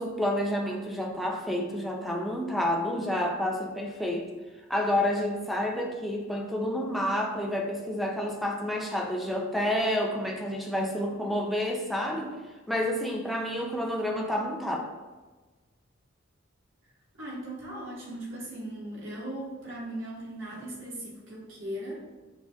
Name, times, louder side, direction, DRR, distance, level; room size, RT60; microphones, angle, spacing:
voice 1, 0.0-4.3 4.7-12.3 12.7-14.8, left 1 dB, ahead, 0 dB, 0.4 m, -29 dB
voice 2, 17.2-22.0, right 1 dB, 65° right, -6 dB, 1.4 m, -38 dB
6.0 x 2.4 x 2.7 m, 1.2 s
head